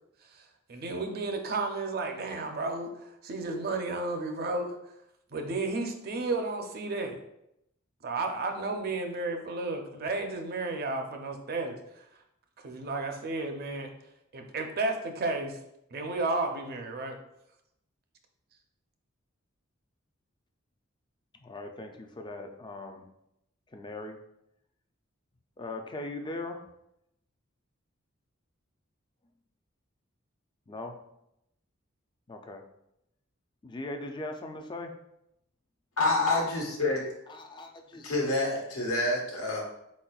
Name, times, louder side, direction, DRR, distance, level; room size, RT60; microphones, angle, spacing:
voice 1, 0.7-2.9 3.2-4.8 5.3-7.2 8.0-11.8 12.6-13.9 14.3-15.5 15.9-17.1, right 3 dB, 50° right, 4 dB, 0.6 m, -32 dB
voice 2, 21.4-23.1 23.7-24.2 25.6-26.6 30.7-31.0 32.3-32.6 33.6-34.9 37.3-38.4, left 2 dB, 20° left, 5 dB, 0.4 m, -40 dB
voice 3, 36.0-37.0 38.0-39.6, left 2 dB, 85° left, -1 dB, 1.2 m, -27 dB
4.4 x 4.1 x 2.3 m, 0.81 s
head